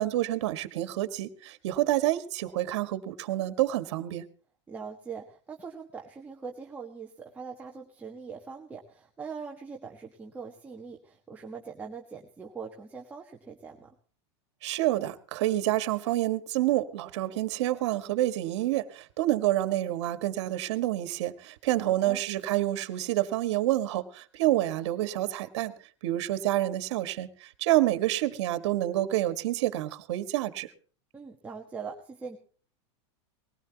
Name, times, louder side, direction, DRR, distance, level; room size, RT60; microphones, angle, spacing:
voice 1, 0.0-4.2 14.6-25.7 26.0-30.7, right 15 dB, 65° right, 11 dB, 1.7 m, -28 dB
voice 2, 4.7-14.0 21.8-22.2 31.1-32.4, right 5 dB, 10° right, 1 dB, 1.4 m, -42 dB
20.0 x 17.5 x 2.9 m, 0.41 s
supercardioid pair, 165°, 16 cm